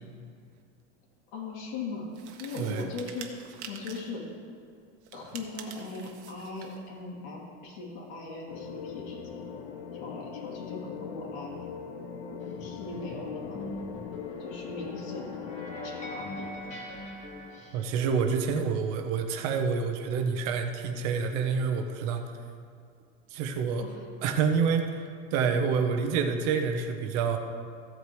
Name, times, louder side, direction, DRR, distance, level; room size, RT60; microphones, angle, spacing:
voice 1, 1.3-2.1 2.4-4.2 5.1-9.5 9.9-11.5 12.4-13.8 14.4-16.9 23.8-24.0, left 3 dB, 60° left, -3 dB, 3.0 m, -39 dB
sound 1, 2.1-4.2 5.0-6.8, right 7 dB, 85° right, 1.4 m, -46 dB
sound 2, 8.5-16.2, left 7 dB, 85° left, 1.0 m, -41 dB
sound 3, 12.4-17.9, left 1 dB, 20° left, 1.9 m, -42 dB
voice 2, 17.7-22.4 23.3-23.8 24.2-27.4, right 6 dB, 45° right, 5 dB, 1.0 m, -28 dB
15.5 x 8.6 x 3.2 m, 2.3 s
supercardioid pair, 160°, 34 cm